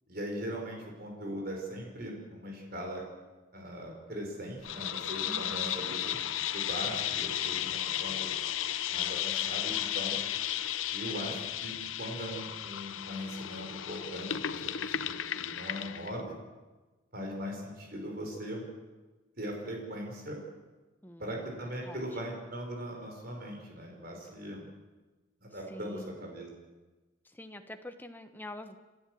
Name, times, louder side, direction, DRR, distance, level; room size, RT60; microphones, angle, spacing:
voice 1, 0.1-3.0 3.5-6.2 6.5-8.3 8.9-10.2 10.9-11.7 12.0-16.3 17.1-18.6 19.4-20.4 21.2-24.7 25.4-26.5, equal, 50° right, 1 dB, 5.3 m, -40 dB
sound 1, 4.6-16.1, left 11 dB, 85° left, 0.7 m, -34 dB
voice 2, 5.2-5.9 21.0-22.2 25.7-26.3 27.2-28.8, left 1 dB, 10° left, 7 dB, 1.2 m, -46 dB
29.0 x 12.5 x 7.8 m, 1.2 s
head